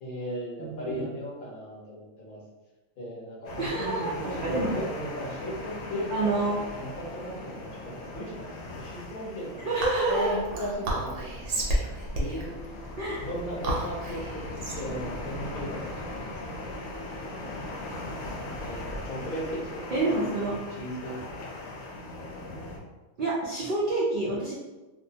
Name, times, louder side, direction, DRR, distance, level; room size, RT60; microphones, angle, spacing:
voice 1, 0.0-2.4 3.0-8.5 8.8-9.7 10.1-11.8 12.1-12.6 13.2-14.4 14.7-16.6 17.2-17.8 18.6-20.3 20.7-21.5, equal, 45° left, -5 dB, 0.8 m, -37 dB
voice 2, 0.6-1.1 3.6-4.1 4.4-4.7 6.1-6.7 9.7-10.4 13.0-13.3 19.9-20.6 23.2-24.5, right 2 dB, 70° right, -8 dB, 0.5 m, -28 dB
sound 1, 3.5-22.8, left 2 dB, 75° left, 1.0 m, -39 dB
Whispering, 9.8-16.5, right 1 dB, 90° right, 1.1 m, -32 dB
2.7 x 2.1 x 2.6 m, 1.1 s
omnidirectional pair, 1.5 m